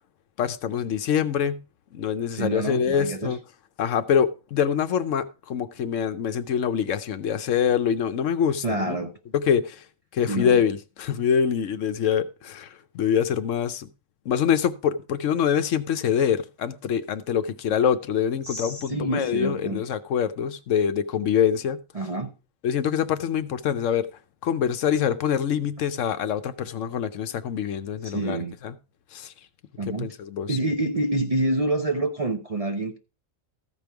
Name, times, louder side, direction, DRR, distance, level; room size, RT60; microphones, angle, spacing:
voice 1, 0.4-1.6 1.9-3.4 3.8-9.0 9.3-9.8 10.1-13.9 14.3-21.8 22.6-24.1 24.4-28.4 28.6-28.7 29.1-29.3 29.9-30.6, left 8 dB, 75° left, 1.0 m, -25 dB
voice 2, 2.3-3.4 8.6-9.2 10.3-10.6 18.4-19.8 21.9-22.3 28.0-28.6 29.8-30.2 30.5-33.0, right 2 dB, 35° right, 0.6 m, -27 dB
14.0 x 5.2 x 4.5 m
omnidirectional pair, 1.4 m